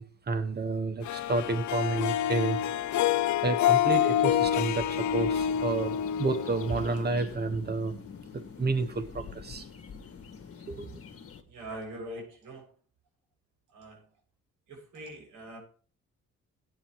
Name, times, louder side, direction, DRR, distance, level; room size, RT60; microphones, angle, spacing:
voice 1, 0.0-2.6 3.4-8.0 8.3-9.6 10.7-10.9, right 3 dB, 35° right, 10 dB, 1.7 m, -30 dB
Harp, 1.0-7.3, left 10 dB, 70° left, 0.7 m, -27 dB
sound 1, 4.1-11.4, left 6 dB, 50° left, 2.2 m, -46 dB
voice 2, 11.5-12.7 13.7-14.1 14.7-15.6, right 1 dB, 85° right, 1 dB, 7.3 m, -43 dB
17.0 x 9.9 x 3.2 m, 0.42 s
cardioid pair, 90°, 30 cm